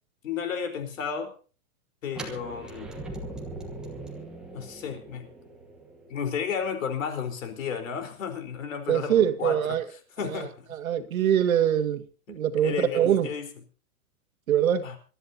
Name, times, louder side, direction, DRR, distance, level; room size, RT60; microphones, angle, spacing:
voice 1, 0.2-1.3 2.0-3.0 4.5-5.3 6.1-9.8 10.2-10.7 11.0-11.1 12.3-13.5 14.8-15.0, left 7 dB, 60° left, 4.3 m, -33 dB
sound 1, 2.1-8.0, right 2 dB, ahead, 1.2 m, -41 dB
voice 2, 8.9-9.8 10.2-12.0 12.3-13.3 14.5-14.9, right 9 dB, 65° right, 2.1 m, -24 dB
26.0 x 13.5 x 2.8 m
hypercardioid pair, 175°, 45 cm